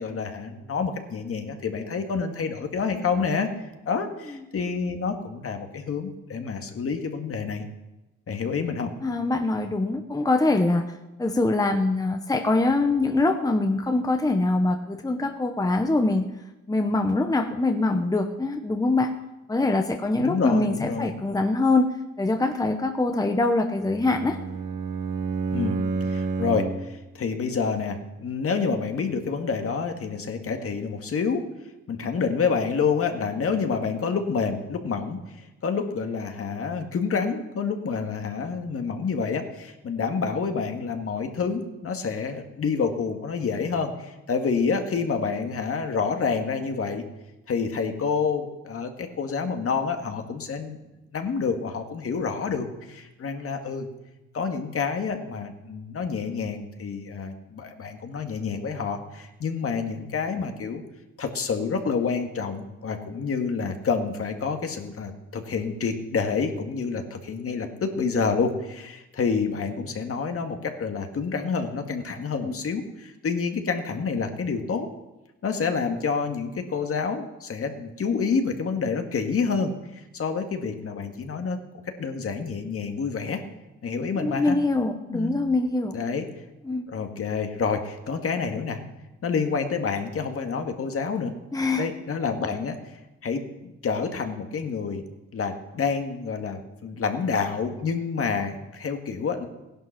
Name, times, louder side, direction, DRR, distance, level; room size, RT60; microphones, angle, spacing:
voice 1, 0.0-3.5 3.9-7.6 8.3-8.9 9.6-9.7 20.2-21.1 25.5-25.8 26.1-31.5 31.9-35.2 35.6-47.0 47.5-50.8 51.1-53.9 54.3-60.8 61.2-74.9 75.4-81.6 82.0-83.4 83.8-84.6 85.1-85.3 85.9-86.3 86.9-88.8 89.2-91.3 91.8-93.4 93.8-95.0 95.3-99.5, left 5 dB, 50° left, 5 dB, 1.9 m, -28 dB
voice 2, 9.0-10.8 11.2-16.3 16.7-19.1 19.5-21.9 22.2-24.4 72.4-72.5 84.1-85.9 86.7-86.8 91.5-91.9, left 2 dB, 10° left, 6 dB, 1.0 m, -23 dB
Bowed string instrument, 23.8-27.0, right 4 dB, 75° right, 2.2 m, -29 dB
16.0 x 11.0 x 6.0 m, 1.0 s
cardioid pair, 90°, 30 cm